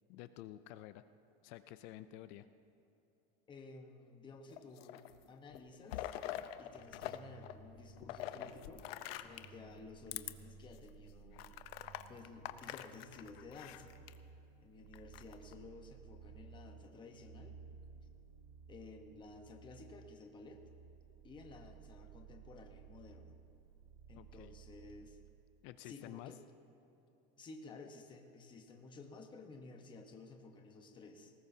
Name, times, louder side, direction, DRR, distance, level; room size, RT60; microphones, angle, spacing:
voice 1, 0.1-1.0 1.4-2.5 24.2-24.5 25.6-26.3, left 14 dB, 40° left, 12 dB, 0.4 m, -51 dB
voice 2, 3.5-6.2 6.6-8.9 9.2-11.6 12.1-13.9 14.6-17.6 18.7-20.6 21.2-23.4 24.1-25.2 25.8-26.4 27.4-31.3, left 3 dB, 15° left, 4 dB, 1.0 m, -54 dB
sound 1, 4.5-5.2 5.5-7.2 7.4-9.6 10.1-10.3 10.8-10.9 11.4-14.1 14.9-15.5, left 13 dB, 80° left, 0.7 m, -45 dB
sound 2, 6.7-25.3, right 6 dB, 65° right, 2.2 m, -57 dB
20.5 x 19.0 x 2.7 m, 2.8 s
supercardioid pair, 165°, 30 cm